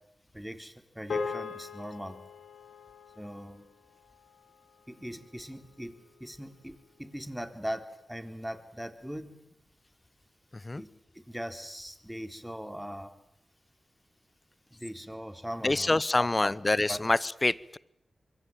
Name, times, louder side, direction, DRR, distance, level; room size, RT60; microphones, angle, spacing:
voice 1, 0.3-2.2 3.2-3.6 4.9-6.7 7.0-7.8 8.1-9.3 10.8-10.9 11.2-13.1 14.7-16.5 16.9-17.0, equal, 5° right, 8 dB, 3.8 m, -40 dB
sound 1, 1.1-5.6, left 4 dB, 85° left, 3.3 m, -40 dB
voice 2, 10.5-10.8 15.6-17.8, left 2 dB, 35° left, 20 dB, 1.0 m, -26 dB
26.5 x 23.0 x 9.0 m, 0.77 s
cardioid pair, 45°, 0 cm